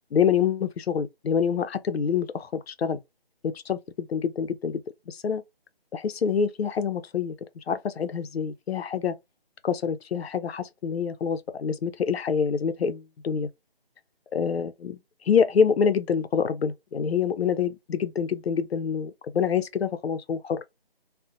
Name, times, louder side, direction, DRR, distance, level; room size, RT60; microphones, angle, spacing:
voice 1, 0.1-3.0 3.4-5.4 5.9-7.4 7.7-9.2 9.6-13.5 14.3-15.0 15.2-20.6, left 7 dB, 80° left, 0.5 m, -26 dB
2.5 x 2.1 x 2.5 m
figure-of-eight pair, 175°, 30 cm